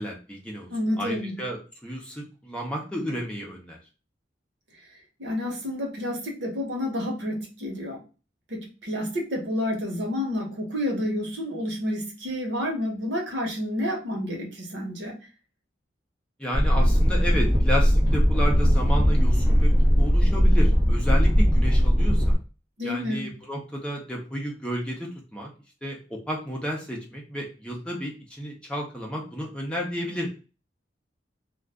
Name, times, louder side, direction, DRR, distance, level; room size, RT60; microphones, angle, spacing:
voice 1, 0.0-0.7 1.0-3.8 16.4-19.7 20.0-22.4 22.8-25.5 25.8-30.3, equal, 5° left, -2 dB, 0.7 m, -32 dB
voice 2, 0.7-1.4 5.2-8.0 8.5-15.2 22.8-23.3, left 1 dB, 80° right, 1 dB, 1.0 m, -29 dB
sound 1, 16.5-22.4, equal, 25° right, 1.1 m, -19 dB
2.4 x 2.4 x 3.4 m, 0.33 s
head